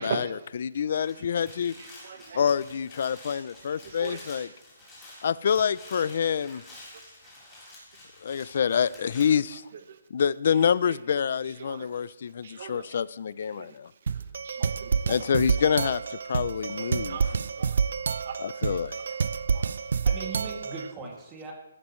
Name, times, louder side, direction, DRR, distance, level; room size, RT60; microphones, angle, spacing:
voice 1, 0.0-0.5 1.0-1.1 1.8-2.4 3.7-4.5 6.9-7.0 8.4-8.5 9.9-10.0 10.9-11.0 11.6-11.9 12.4-13.0 13.5-13.8 14.0-15.2 15.6-15.7 16.7-17.8 18.2-19.0 19.5-19.7, right 6 dB, 45° right, 8 dB, 1.2 m, -40 dB
voice 2, 0.6-1.7 2.3-4.5 5.2-6.6 8.2-9.6 10.1-13.9 15.1-17.2 18.4-19.0, left 7 dB, 45° left, 18 dB, 0.4 m, -27 dB
sound 1, 1.0-9.2, left 2 dB, 5° left, 3.9 m, -49 dB
sound 2, 14.1-20.9, right 6 dB, 60° right, 0.5 m, -28 dB
voice 3, 18.9-19.2 20.0-21.5, right 4 dB, 15° right, -1 dB, 2.4 m, -40 dB
15.5 x 12.0 x 3.2 m, 0.93 s
hypercardioid pair, 170°, 0 cm